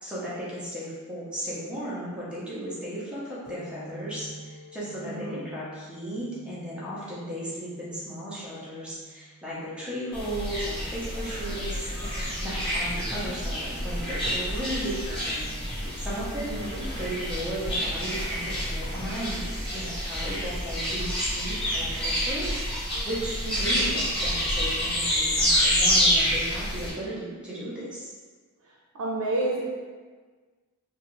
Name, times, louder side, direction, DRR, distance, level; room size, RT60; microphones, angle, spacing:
voice 1, 0.0-15.6 16.0-16.5 16.9-22.5 23.0-28.1, right 1 dB, 5° right, -9 dB, 0.7 m, -35 dB
sound 1, 3.5-10.8, right 1 dB, 50° left, 1.3 m, -48 dB
voice 2, 5.0-5.4 16.4-16.8 23.5-24.0 28.6-29.6, right 2 dB, 85° right, -4 dB, 0.5 m, -31 dB
sound 2, 10.1-26.9, equal, 25° left, 1.1 m, -28 dB
3.1 x 2.4 x 3.0 m, 1.5 s
head